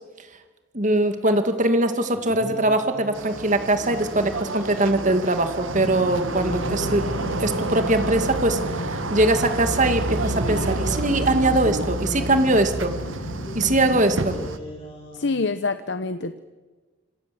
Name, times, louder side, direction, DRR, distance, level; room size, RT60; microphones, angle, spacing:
voice 1, 0.7-12.9 13.5-14.4, right 1 dB, 40° right, 7 dB, 2.3 m, -22 dB
sound 1, 2.0-5.2 6.1-9.0 10.2-15.4, equal, 30° left, 6.7 m, -38 dB
sound 2, 3.1-14.6, right 2 dB, 80° right, 1.7 m, -30 dB
sound 3, 5.7-14.5, left 1 dB, 80° left, 2.5 m, -34 dB
voice 2, 15.1-16.4, left 3 dB, 60° left, 12 dB, 1.0 m, -26 dB
27.0 x 26.5 x 7.8 m, 1.3 s
head